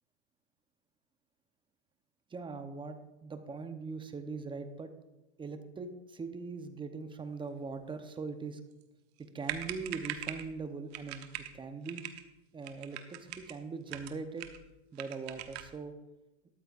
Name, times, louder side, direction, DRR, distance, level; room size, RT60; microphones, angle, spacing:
voice 1, 2.3-4.9 5.4-8.6 9.2-12.0 12.5-14.5 14.9-15.9, right 4 dB, 15° right, 8 dB, 0.9 m, -41 dB
sound 1, 9.2-9.3 9.4-10.5 10.9-11.5 11.9-12.2 12.6-13.6 13.9-14.7 15.0-15.8, right 12 dB, 65° right, 1.2 m, -41 dB
13.5 x 12.5 x 2.5 m, 1.0 s
hypercardioid pair, 120°, 35 cm